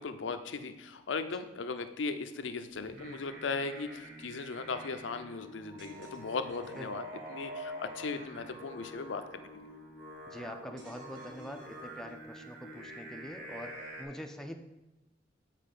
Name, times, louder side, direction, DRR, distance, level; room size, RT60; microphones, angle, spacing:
voice 1, 0.0-7.0 7.3-9.5, left 4 dB, 80° left, 9 dB, 0.6 m, -37 dB
Singing, 2.7-14.0, equal, 50° right, 2.0 m, -46 dB
sound 1, 5.8-7.0 10.8-12.4, right 1 dB, 75° right, 1.5 m, -57 dB
voice 2, 10.3-14.6, equal, 5° left, 4 dB, 0.4 m, -44 dB
7.5 x 4.1 x 5.3 m, 1.0 s
head